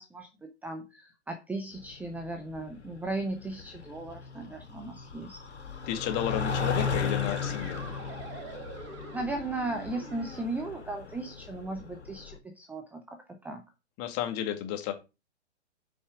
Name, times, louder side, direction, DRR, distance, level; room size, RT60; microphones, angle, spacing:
voice 1, 0.0-5.4 9.1-13.6, right 2 dB, 5° right, 6 dB, 0.7 m, -37 dB
sound 1, 1.8-12.4, left 5 dB, 75° left, 4.1 m, -36 dB
voice 2, 5.9-7.8 14.0-14.9, left 10 dB, 30° left, 6 dB, 2.0 m, -32 dB
sound 2, 6.6-10.4, right 5 dB, 35° right, 3.2 m, -46 dB
8.1 x 5.5 x 5.9 m, 0.27 s
figure-of-eight pair, 120°, 34 cm